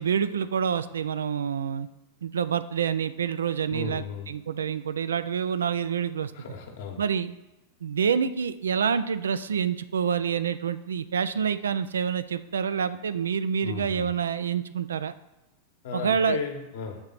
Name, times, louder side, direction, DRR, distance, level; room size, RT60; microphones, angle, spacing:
voice 1, 0.0-1.9 2.2-6.3 7.0-7.3 7.8-15.1 15.9-16.4, right 7 dB, 65° right, 13 dB, 0.3 m, -27 dB
voice 2, 3.7-4.3 6.3-7.0 13.6-14.1 15.8-17.0, left 4 dB, 55° left, 3 dB, 1.1 m, -34 dB
6.2 x 3.7 x 5.7 m, 0.98 s
figure-of-eight pair, 90°, 0 cm